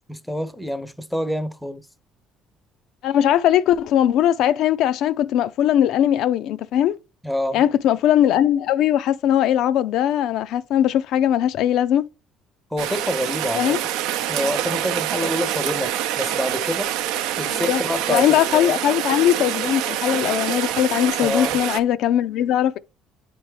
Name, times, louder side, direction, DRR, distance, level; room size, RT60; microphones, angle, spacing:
voice 1, 0.1-1.9 7.2-7.6 12.7-13.8 14.3-16.9 17.4-18.7 21.2-21.6, left 1 dB, ahead, 0.5 m, -27 dB
voice 2, 3.0-7.0 7.5-12.1 13.6-13.8 17.5-17.8 18.1-22.8, left 11 dB, 65° left, 0.3 m, -20 dB
Rain, 12.8-21.8, right 12 dB, 90° right, 0.5 m, -26 dB
9.3 x 3.4 x 3.1 m
cardioid pair, 130°, 0 cm